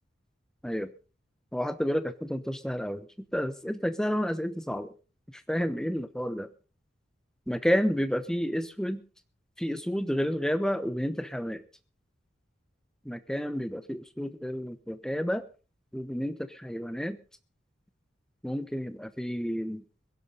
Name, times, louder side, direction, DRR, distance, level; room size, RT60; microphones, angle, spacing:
voice 1, 1.5-3.1 3.3-4.9 5.5-6.5 7.5-9.0 9.6-11.6 13.0-15.4 15.9-17.2 18.4-19.8, equal, 5° left, 12 dB, 0.9 m, -30 dB
22.0 x 11.0 x 4.0 m, 0.35 s
head